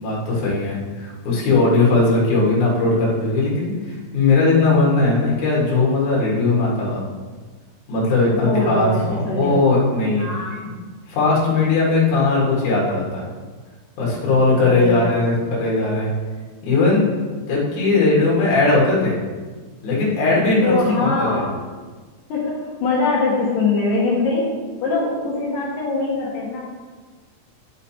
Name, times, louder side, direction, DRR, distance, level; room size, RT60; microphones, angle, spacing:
voice 1, 0.0-7.0 7.9-10.3 11.1-13.3 14.0-16.1 16.6-17.1 17.5-19.2 19.8-21.4, left 3 dB, 50° left, -5 dB, 2.9 m, -19 dB
voice 2, 8.3-9.6 10.2-10.5 14.6-15.2 20.6-21.5 22.3-24.5 24.8-26.6, left 3 dB, 70° left, -4 dB, 2.2 m, -22 dB
11.0 x 4.0 x 4.2 m, 1.4 s
omnidirectional pair, 5.3 m